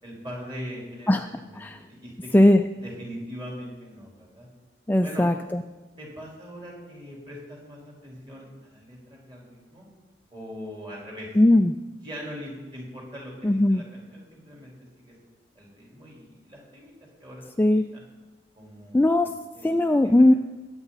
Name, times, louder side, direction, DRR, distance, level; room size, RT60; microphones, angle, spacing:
voice 1, 0.0-2.5 2.8-4.5 5.0-5.2 6.0-9.8 10.3-11.3 12.0-15.1 15.5-16.9 17.2-17.5 17.7-18.0 18.5-19.0 19.5-20.2, equal, 25° right, -3 dB, 4.0 m, -41 dB
voice 2, 4.9-5.6 11.4-11.7 13.4-13.8 17.6-17.8 18.9-19.3 19.6-20.3, left 1 dB, 10° left, 6 dB, 0.3 m, -18 dB
21.5 x 8.9 x 4.1 m, 1.2 s
head